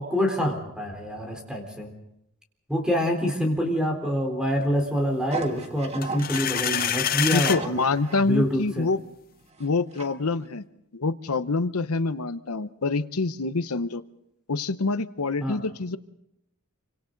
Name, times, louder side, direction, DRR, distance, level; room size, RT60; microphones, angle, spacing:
voice 1, 0.0-1.9 2.7-7.8 8.2-8.9 15.4-15.6, equal, 5° right, 2 dB, 3.8 m, -26 dB
sound 1, 5.3-8.3 8.8-8.9 9.4-10.1 10.4-10.5, right 4 dB, 30° right, 1.6 m, -36 dB
sound 2, 6.0-7.6, left 9 dB, 40° left, 0.7 m, -26 dB
voice 2, 7.3-9.0 9.6-10.6 10.9-14.0 14.5-16.0, left 3 dB, 80° left, 12 dB, 0.9 m, -26 dB
27.0 x 25.5 x 4.0 m, 0.81 s
head